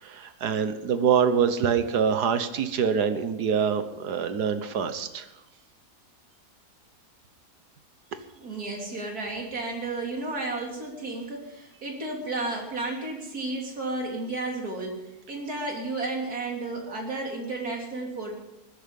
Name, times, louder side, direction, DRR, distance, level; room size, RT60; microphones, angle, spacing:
voice 1, 0.0-5.3, right 7 dB, 85° right, 10 dB, 1.7 m, -25 dB
voice 2, 8.4-18.3, right 2 dB, 70° right, 0 dB, 3.7 m, -32 dB
20.5 x 10.0 x 5.3 m, 0.91 s
omnidirectional pair, 1.7 m